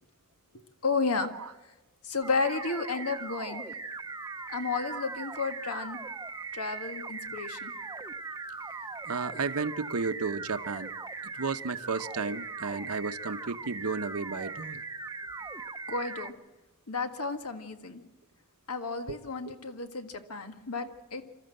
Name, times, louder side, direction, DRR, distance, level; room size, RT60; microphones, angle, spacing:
voice 1, 0.8-1.3 2.0-3.6 4.5-6.0 6.5-7.7 15.9-16.3 16.9-18.0 18.7-21.2, left 4 dB, 80° left, 7 dB, 1.7 m, -32 dB
sound 1, 2.2-16.3, right 4 dB, 15° right, 0.7 m, -40 dB
voice 2, 9.0-10.9 11.3-14.8 19.1-19.2, right 4 dB, 75° right, 11 dB, 0.9 m, -33 dB
26.5 x 13.5 x 7.8 m, 1.2 s
head